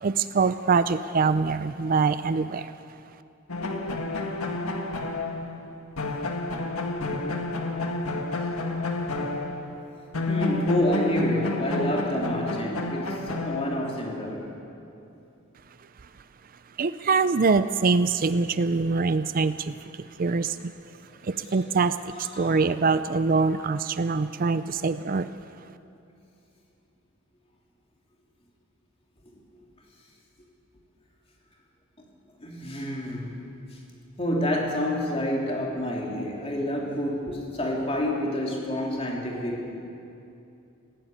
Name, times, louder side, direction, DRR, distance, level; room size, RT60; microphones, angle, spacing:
voice 1, 0.0-2.7 16.8-20.7 21.2-25.3, right 4 dB, 40° right, 13 dB, 0.4 m, -24 dB
sound 1, 3.5-9.9 10.1-14.1, left 2 dB, 85° left, 1.7 m, -30 dB
voice 2, 10.3-14.5 21.3-21.8 22.1-22.6 32.4-33.4 33.7-33.8 34.2-39.7, left 1 dB, 25° left, -1 dB, 3.1 m, -29 dB
19.5 x 16.0 x 9.1 m, 2.7 s
head